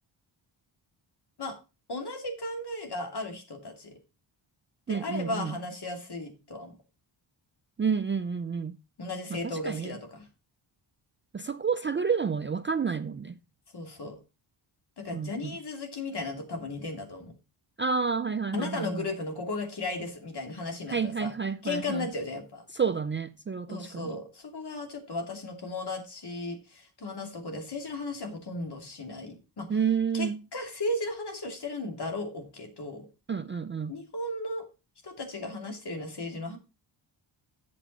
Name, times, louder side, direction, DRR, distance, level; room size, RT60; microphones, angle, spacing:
voice 1, 1.9-4.0 4.9-6.8 9.0-10.3 13.7-14.2 15.0-17.4 18.5-21.3 21.6-22.6 23.7-29.7 30.1-33.1 33.9-34.6 35.0-36.6, left 2 dB, 50° left, 2.8 m, -35 dB
voice 2, 4.9-5.6 7.8-8.8 9.3-10.0 11.3-13.4 15.1-15.5 17.8-19.1 20.9-22.1 22.7-24.1 29.7-30.4 33.3-33.9, right 6 dB, 25° right, 0.4 m, -30 dB
8.5 x 7.0 x 4.2 m
cardioid pair, 85°, 49 cm